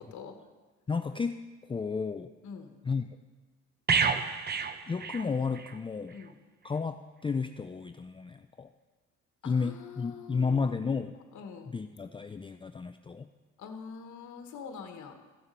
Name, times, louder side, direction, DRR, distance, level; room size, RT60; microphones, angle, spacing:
voice 1, 0.9-2.3 2.8-3.1 4.9-6.2 6.6-8.7 9.4-11.2 11.7-13.3, left 5 dB, 20° left, 9 dB, 0.4 m, -32 dB
voice 2, 2.4-2.8 6.1-6.3 9.4-11.0 11.3-11.7 13.6-15.1, left 6 dB, 70° left, 5 dB, 1.3 m, -45 dB
sound 1, 3.9-5.8 6.1-6.3, right 5 dB, 35° right, 0.7 m, -29 dB
14.0 x 7.1 x 5.3 m, 1.4 s
cardioid pair, 90°, 30 cm